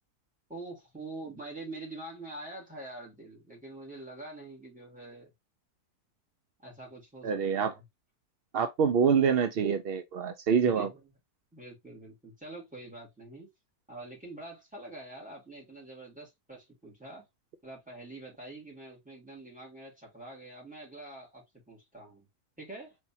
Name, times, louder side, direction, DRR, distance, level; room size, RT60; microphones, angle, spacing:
voice 1, 0.5-5.3 6.6-7.8 10.6-11.0 11.5-13.5 13.9-17.2 17.6-22.3 22.6-23.0, right 2 dB, 5° right, 2.3 m, -45 dB
voice 2, 7.2-7.7 8.5-10.9, right 6 dB, 80° right, 0.5 m, -26 dB
4.1 x 3.4 x 2.7 m
omnidirectional pair, 1.7 m